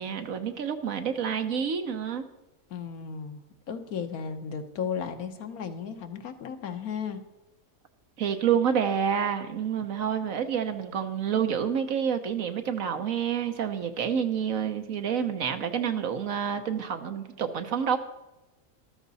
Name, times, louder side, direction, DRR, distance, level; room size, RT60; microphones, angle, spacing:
voice 1, 0.0-2.2 8.2-18.0, right 8 dB, 70° right, 7 dB, 1.4 m, -28 dB
voice 2, 2.7-7.2, left 6 dB, 90° left, 7 dB, 1.6 m, -35 dB
13.5 x 13.0 x 4.1 m, 0.99 s
omnidirectional pair, 1.5 m